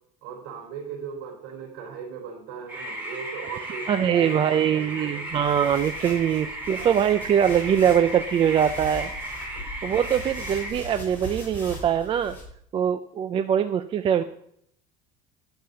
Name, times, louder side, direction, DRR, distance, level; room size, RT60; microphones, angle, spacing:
voice 1, 0.2-5.4 14.2-14.3, right 6 dB, 80° right, 1 dB, 3.4 m, -38 dB
sound 1, 2.7-10.7, right 1 dB, 10° right, 3.4 m, -35 dB
voice 2, 3.9-9.1 9.8-12.3 12.7-14.2, right 9 dB, 30° right, 10 dB, 0.4 m, -22 dB
sound 2, 5.3-12.4, equal, 10° left, 3.7 m, -40 dB
10.5 x 6.7 x 6.8 m, 0.69 s
cardioid pair, 145°, 19 cm